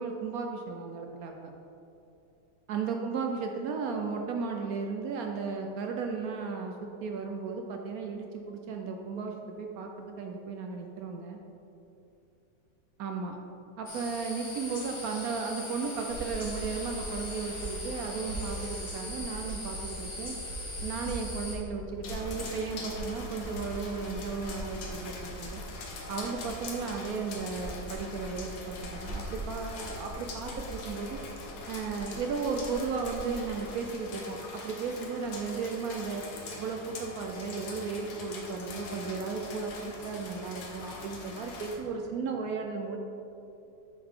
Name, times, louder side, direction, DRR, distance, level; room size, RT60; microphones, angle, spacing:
voice 1, 0.0-1.3 2.7-11.4 13.0-13.4 13.8-20.4 20.8-25.6 26.1-31.2 31.7-36.2 36.6-43.0, right 5 dB, 70° right, 3 dB, 0.8 m, -35 dB
sound 1, 13.9-21.6, left 2 dB, 20° left, 0.9 m, -40 dB
sound 2, 16.0-33.5, right 1 dB, 50° left, 1.5 m, -42 dB
sound 3, 22.0-41.8, left 3 dB, 85° left, 1.7 m, -43 dB
7.7 x 5.7 x 3.6 m, 2.8 s
omnidirectional pair, 2.0 m